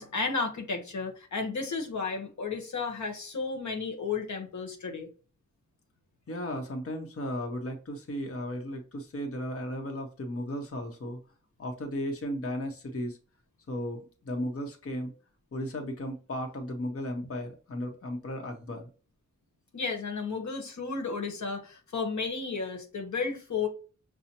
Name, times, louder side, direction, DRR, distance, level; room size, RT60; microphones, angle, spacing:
voice 1, 0.0-5.1 19.7-23.7, left 4 dB, 75° left, 1.0 m, -33 dB
voice 2, 6.3-11.2 11.6-13.2 13.7-15.1 15.5-18.9, equal, 50° left, 0.8 m, -35 dB
5.4 x 2.0 x 2.8 m
wide cardioid pair, 70°, 29 cm